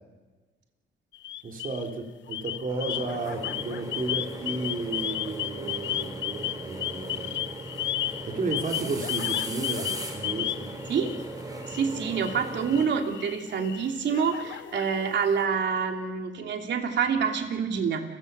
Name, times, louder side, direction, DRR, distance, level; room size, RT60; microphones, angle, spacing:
sound 1, 1.1-1.9 2.3-11.3 11.6-15.4, left 12 dB, 70° left, 0.6 m, -34 dB
voice 1, 1.4-7.4 8.3-9.9 10.1-10.7, right 3 dB, 45° right, 2 dB, 3.6 m, -33 dB
sound 2, 2.7-12.9, right 2 dB, 20° right, 4.5 m, -38 dB
voice 2, 11.6-18.0, right 6 dB, 65° right, 4 dB, 3.1 m, -27 dB
29.0 x 16.0 x 7.0 m, 1.3 s
cardioid pair, 90°, 20 cm